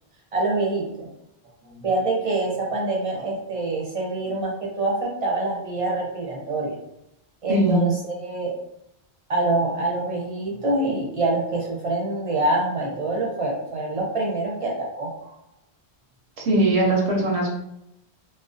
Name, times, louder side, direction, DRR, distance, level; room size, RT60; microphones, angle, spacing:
voice 1, 0.3-1.1 1.7-6.8 7.4-8.5 9.3-15.1, right 2 dB, 40° right, -3 dB, 0.6 m, -25 dB
voice 2, 7.5-7.8 16.4-17.6, right 1 dB, 85° right, -1 dB, 0.9 m, -20 dB
2.3 x 2.1 x 2.5 m, 0.80 s
omnidirectional pair, 1.1 m